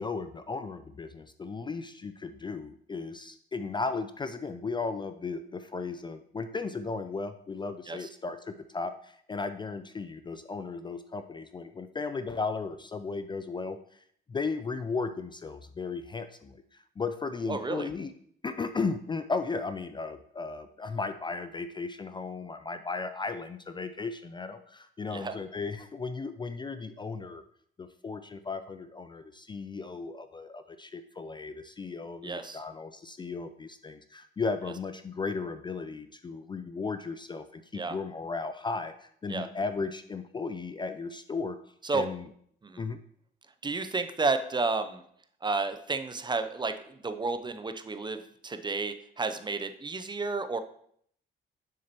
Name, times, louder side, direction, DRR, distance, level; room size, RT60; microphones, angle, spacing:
voice 1, 0.0-13.8 14.3-16.6 17.0-18.1 18.4-27.4 27.8-41.6 41.9-42.3 42.8-43.0, left 4 dB, 25° left, 10 dB, 0.3 m, -35 dB
voice 2, 17.5-17.9 25.1-25.4 32.2-32.6 37.7-38.0 39.3-39.5 41.8-42.1 42.6-42.8 43.6-45.0 45.4-50.6, right 3 dB, 20° right, 9 dB, 0.5 m, -31 dB
6.8 x 6.4 x 2.9 m, 0.65 s
cardioid pair, 90°, 20 cm